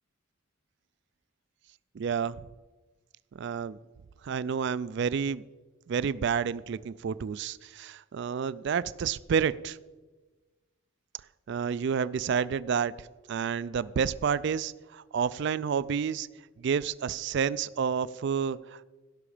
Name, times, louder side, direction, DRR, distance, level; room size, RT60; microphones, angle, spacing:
voice 1, 1.9-2.5 3.3-3.8 4.2-5.4 5.9-9.8 11.5-16.3 16.6-18.8, right 6 dB, 55° right, 18 dB, 0.3 m, -30 dB
16.5 x 6.0 x 5.0 m, 1.3 s
head